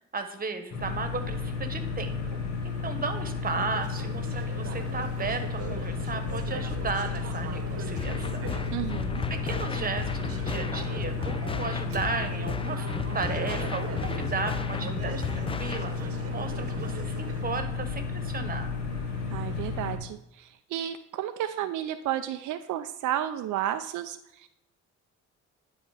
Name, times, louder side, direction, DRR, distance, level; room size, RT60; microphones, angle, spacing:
voice 1, 0.1-8.5 9.3-12.9 13.1-18.7, right 4 dB, 30° right, 7 dB, 1.1 m, -35 dB
sound 1, 0.7-20.0, left 5 dB, 65° left, 1.6 m, -33 dB
Conversation / Chatter, 3.4-17.4, right 5 dB, 50° right, 1.0 m, -41 dB
sound 2, 8.0-16.0, left 5 dB, 20° left, 0.3 m, -36 dB
voice 2, 8.7-9.2 19.3-24.5, right 11 dB, 80° right, 8 dB, 0.5 m, -32 dB
10.5 x 4.3 x 4.9 m, 0.82 s
cardioid pair, 90°, 30 cm